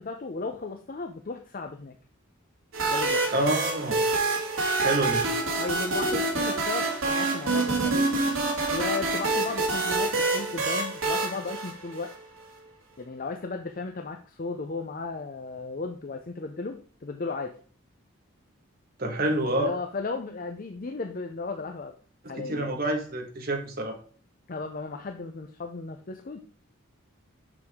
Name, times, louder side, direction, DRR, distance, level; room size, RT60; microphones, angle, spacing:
voice 1, 0.0-2.0 2.9-3.3 5.0-5.2 5.6-8.1 8.7-12.1 13.0-17.6 19.6-21.9 22.3-22.7 24.5-26.4, left 3 dB, 40° left, 5 dB, 0.6 m, -35 dB
sound 1, 2.7-12.4, right 3 dB, 85° right, 2.0 m, -27 dB
voice 2, 3.3-4.0 4.8-5.2 19.0-19.7 22.2-24.0, right 1 dB, 45° right, 2 dB, 1.6 m, -27 dB
6.9 x 6.2 x 3.6 m, 0.41 s
head